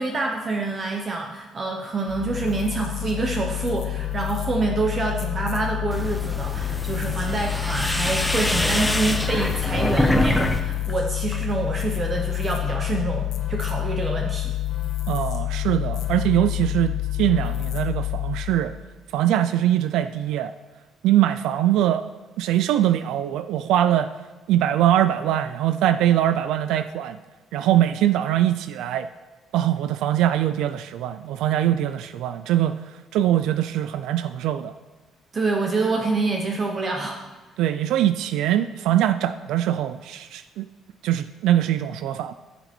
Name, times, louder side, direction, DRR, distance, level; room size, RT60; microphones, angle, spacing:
voice 1, 0.0-14.5 35.3-37.2, right 3 dB, 25° right, 2 dB, 0.8 m, -26 dB
sound 1, 2.1-18.6, left 14 dB, 55° left, 1.1 m, -28 dB
sound 2, 5.9-10.6 10.9-11.5, left 1 dB, 5° left, 0.6 m, -25 dB
voice 2, 15.1-18.7 19.1-20.5 21.0-22.1 22.4-24.1 24.5-27.2 27.5-29.1 29.5-34.7 37.6-40.7 41.0-42.3, right 12 dB, 85° right, 12 dB, 0.4 m, -22 dB
14.5 x 6.9 x 4.4 m, 1.2 s
cardioid pair, 160°, 0 cm